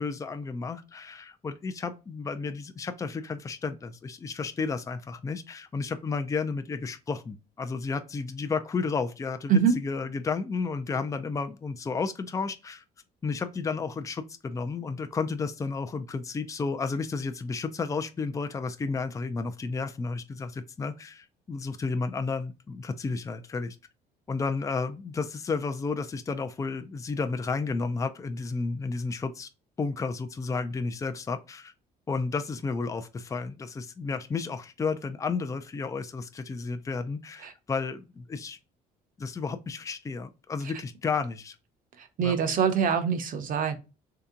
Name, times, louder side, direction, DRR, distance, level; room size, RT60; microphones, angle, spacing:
voice 1, 0.0-12.8 13.2-23.8 24.3-29.5 29.8-31.7 32.1-38.6 39.2-41.6 42.2-42.4, left 4 dB, 20° left, 0.4 m, -32 dB
voice 2, 42.0-43.7, right 7 dB, 55° right, 0.8 m, -24 dB
3.4 x 2.8 x 3.7 m
cardioid pair, 110°, 17 cm